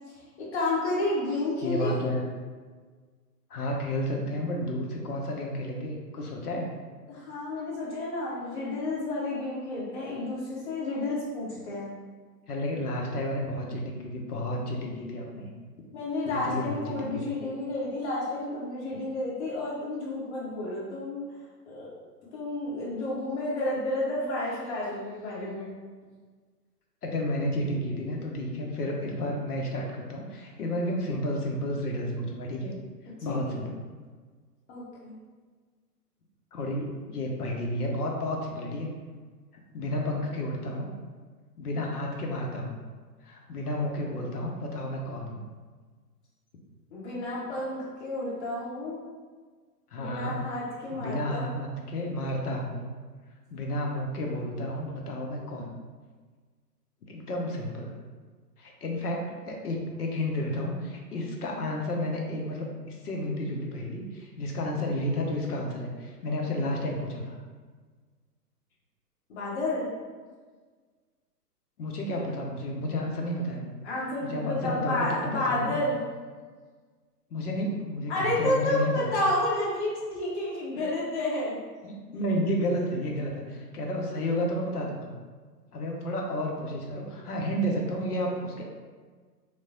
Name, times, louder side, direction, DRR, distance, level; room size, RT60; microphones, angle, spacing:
voice 1, 0.4-2.0 7.1-11.9 15.9-21.2 21.7-21.9 22.3-25.7 33.2-33.4 34.7-35.2 46.9-49.0 50.0-51.6 69.3-69.9 73.8-76.1 78.1-81.6, left 2 dB, 45° left, -6 dB, 1.1 m, -31 dB
voice 2, 1.6-2.3 3.5-6.7 12.5-15.5 16.2-17.3 27.0-32.7 33.2-33.8 36.5-38.9 39.7-40.9 41.6-42.8 43.2-45.4 49.9-50.4 50.9-52.9 53.5-55.7 57.1-57.9 58.6-67.4 71.8-73.6 74.2-75.8 77.3-79.1 81.8-85.1 85.7-88.6, left 1 dB, 70° left, 0 dB, 0.7 m, -31 dB
3.0 x 2.1 x 2.7 m, 1.5 s
figure-of-eight pair, 120°, 49 cm